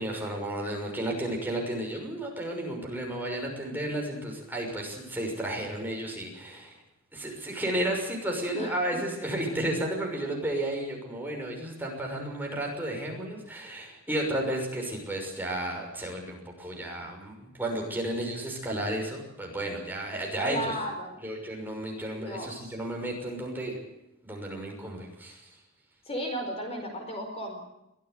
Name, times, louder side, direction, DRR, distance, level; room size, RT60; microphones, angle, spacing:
voice 1, 0.0-6.8 7.1-20.8 21.2-23.8 24.2-25.5, right 1 dB, 10° right, 0 dB, 6.1 m, -33 dB
voice 2, 20.4-21.3 22.1-22.7 26.0-27.6, equal, 30° left, 4 dB, 4.7 m, -35 dB
23.5 x 16.5 x 8.1 m, 0.88 s
head